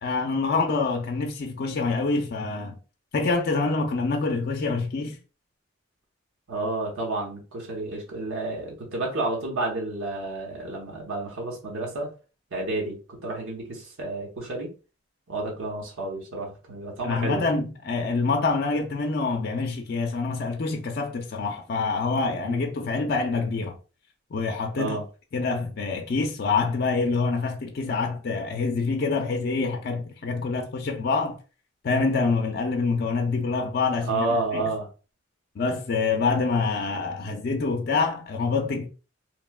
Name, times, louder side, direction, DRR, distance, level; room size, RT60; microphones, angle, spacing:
voice 1, 0.0-2.8 3.1-5.2 17.0-23.8 24.3-25.0 25.3-31.4 31.8-34.3 34.5-34.7 35.6-38.9, left 4 dB, 50° left, 0.4 m, -26 dB
voice 2, 6.5-12.1 12.5-14.7 15.3-17.4 22.4-22.6 24.8-25.0 34.1-34.9, right 2 dB, 85° right, 0.9 m, -30 dB
3.0 x 2.1 x 2.2 m
head